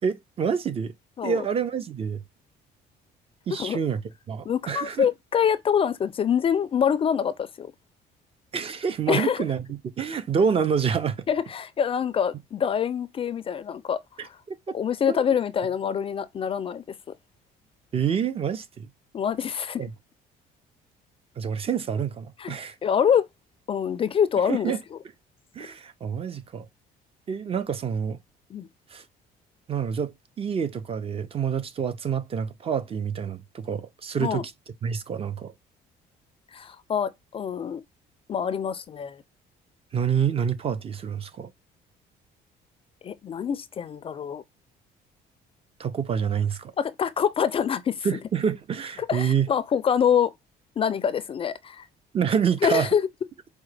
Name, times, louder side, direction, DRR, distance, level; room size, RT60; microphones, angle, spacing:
voice 1, 0.0-0.9 1.2-2.2 3.5-4.0 4.3-5.1 8.5-11.3 14.2-14.3 14.7-14.8 15.1-15.2 17.9-18.9 19.8-19.9 21.4-22.7 24.5-24.8 25.5-26.7 27.3-28.2 28.9-29.0 29.7-34.5 34.8-35.5 39.9-41.5 45.8-46.7 48.0-49.5 52.1-52.9, right 7 dB, 35° right, 0.5 m, -27 dB
voice 2, 4.5-7.7 9.1-9.4 11.3-14.0 14.7-16.8 19.1-19.8 22.4-22.6 22.8-23.3 23.7-24.7 28.5-28.7 34.2-34.4 36.5-37.8 38.3-39.2 43.0-44.4 46.8-48.1 49.1-50.3 50.8-51.9 52.6-53.0, left 8 dB, 35° left, 0.3 m, -25 dB
4.8 x 2.1 x 3.2 m
cardioid pair, 110°, 17 cm